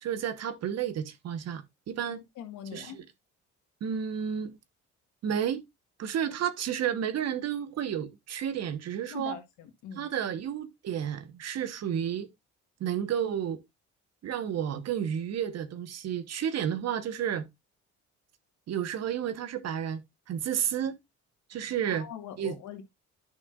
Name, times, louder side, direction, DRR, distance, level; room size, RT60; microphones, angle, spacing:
voice 1, 0.0-2.2 2.7-3.0 3.8-4.5 5.2-5.6 6.0-9.4 10.0-12.3 12.8-13.6 14.2-17.5 18.7-20.0 20.3-21.0 21.5-22.1 22.4-22.5, right 9 dB, 60° right, 1.2 m, -31 dB
voice 2, 2.3-3.0 9.1-10.1 21.8-22.8, left 9 dB, 80° left, 1.6 m, -42 dB
10.5 x 6.0 x 2.4 m
cardioid pair, 90°, 30 cm